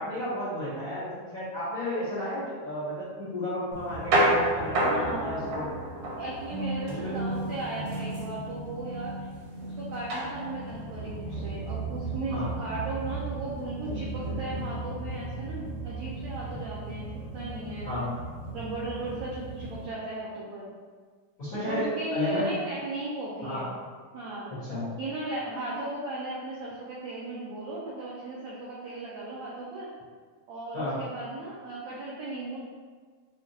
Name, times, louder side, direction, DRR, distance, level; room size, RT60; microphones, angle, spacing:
voice 1, 0.0-5.7 6.9-7.2 12.3-12.5 17.8-18.2 21.4-22.5 23.4-23.7 24.5-24.9 30.7-31.0, left 1 dB, 65° left, -13 dB, 0.8 m, -32 dB
sound 1, 3.7-19.9, right 2 dB, 70° right, 1.8 m, -32 dB
voice 2, 4.8-5.4 6.2-9.1 9.6-17.0 17.3-17.9 18.5-20.7 21.7-23.7 24.1-24.5 25.0-29.9 30.5-32.6, right 2 dB, 90° right, -6 dB, 1.5 m, -36 dB
6.3 x 2.4 x 2.8 m, 1.5 s
omnidirectional pair, 4.0 m